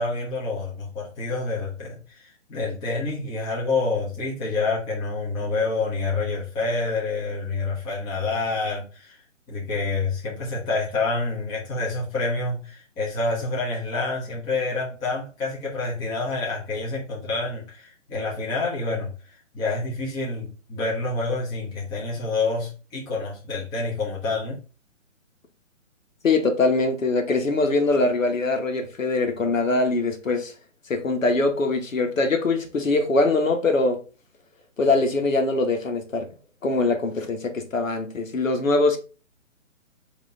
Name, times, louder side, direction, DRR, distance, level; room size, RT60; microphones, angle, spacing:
voice 1, 0.0-9.2 9.5-19.1 19.5-24.6, left 3 dB, 10° left, 1.0 m, -28 dB
voice 2, 26.2-30.5 30.9-34.0 34.8-36.3 36.6-39.0, left 3 dB, 80° left, 1.3 m, -22 dB
5.0 x 2.9 x 3.6 m
hypercardioid pair, 150°, 39 cm